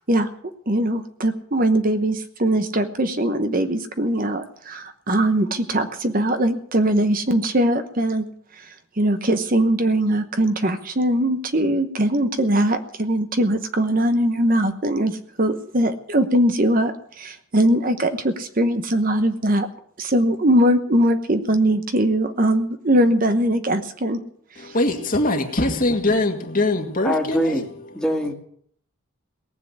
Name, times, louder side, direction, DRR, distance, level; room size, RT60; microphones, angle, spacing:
voice 1, 0.7-19.7 20.0-24.2 24.5-24.7, right 1 dB, 40° right, 1.0 m, -21 dB
voice 2, 24.6-27.6, left 2 dB, 40° left, 2.0 m, -22 dB
voice 3, 27.0-27.7 27.9-28.3, equal, 5° left, 2.0 m, -23 dB
19.0 x 7.7 x 9.6 m
head